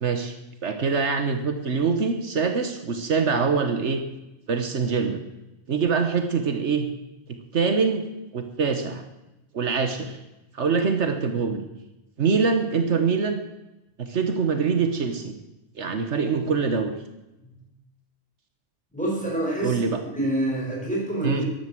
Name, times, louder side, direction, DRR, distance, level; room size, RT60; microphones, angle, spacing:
voice 1, 0.0-0.3 0.6-4.0 4.5-5.2 5.7-6.9 7.3-8.0 8.3-9.0 9.5-10.2 10.5-11.7 12.2-13.5 14.0-15.4 15.7-16.9 19.6-20.0 21.2-21.4, right 5 dB, 75° right, 7 dB, 1.5 m, -24 dB
voice 2, 18.9-19.8 20.1-21.5, right 1 dB, 5° left, -4 dB, 6.7 m, -27 dB
14.5 x 11.0 x 7.7 m, 0.97 s
omnidirectional pair, 1.2 m